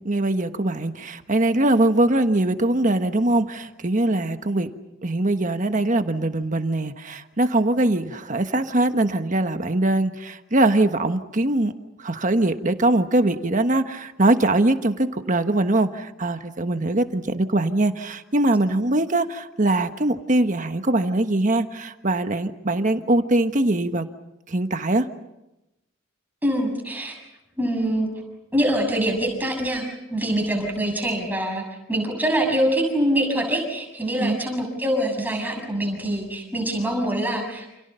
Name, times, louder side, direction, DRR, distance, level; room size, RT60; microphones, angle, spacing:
voice 1, 0.0-4.7 5.0-11.7 12.0-24.1 24.5-25.1 34.2-34.4, right 2 dB, 40° right, 8 dB, 1.3 m, -22 dB
voice 2, 26.4-27.2 27.6-28.1 28.5-37.7, right 1 dB, 10° right, 2 dB, 7.0 m, -24 dB
29.5 x 28.5 x 5.7 m, 0.92 s
head